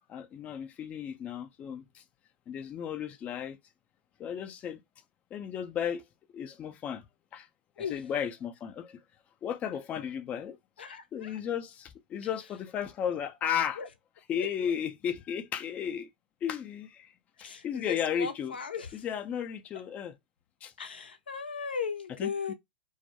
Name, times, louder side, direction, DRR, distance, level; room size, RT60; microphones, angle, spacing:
voice 1, 0.1-2.0 2.5-3.6 4.2-4.8 5.3-6.0 6.3-7.1 7.3-7.5 7.9-9.0 9.4-10.6 11.1-13.8 14.3-16.1 16.4-17.1 17.4-18.5 18.9-20.1 20.6-20.7 22.2-22.5, left 8 dB, 25° left, 0.4 m, -34 dB
voice 2, 10.8-11.4 13.0-13.1 13.8-13.9 14.4-14.5 17.4-19.0 20.8-22.5, left 6 dB, 85° left, 0.6 m, -37 dB
2.3 x 2.1 x 2.7 m
hypercardioid pair, 110°, 5 cm